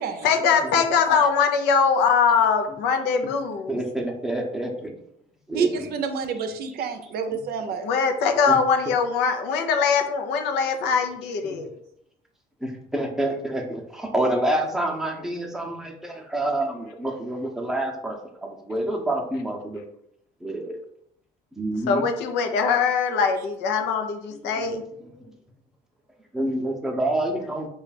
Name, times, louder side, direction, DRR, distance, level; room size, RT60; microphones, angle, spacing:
voice 1, 0.2-3.8 7.8-11.7 21.9-24.8, left 6 dB, 85° left, 5 dB, 0.6 m, -22 dB
voice 2, 3.7-4.9 5.5-5.8 8.5-8.6 8.9-9.0 11.4-11.6 12.6-19.8 20.4-20.8 21.6-22.0 24.3-24.5 26.3-27.7, right 1 dB, 5° right, 0 dB, 0.7 m, -28 dB
voice 3, 5.5-7.9, right 6 dB, 65° right, 8 dB, 0.5 m, -28 dB
3.2 x 2.4 x 4.0 m, 0.72 s
cardioid pair, 110°, 17 cm